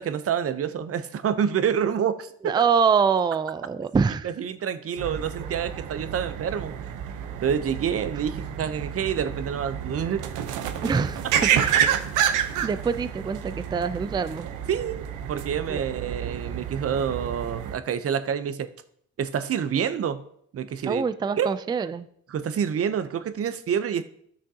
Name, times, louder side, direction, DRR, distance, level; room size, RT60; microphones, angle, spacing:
voice 1, 0.0-2.3 4.2-6.7 7.4-10.2 14.7-18.7 19.2-20.2 20.5-21.0 21.4-21.5 22.3-24.0, right 8 dB, 50° right, 12 dB, 0.7 m, -27 dB
voice 2, 2.4-4.3 10.8-11.8 12.6-14.5 15.7-15.8 20.9-22.1, right 6 dB, 15° right, 13 dB, 0.3 m, -25 dB
sound 1, 5.0-17.8, right 9 dB, 85° right, 0.7 m, -29 dB
12.5 x 6.4 x 2.8 m, 0.69 s
cardioid pair, 90°, 30 cm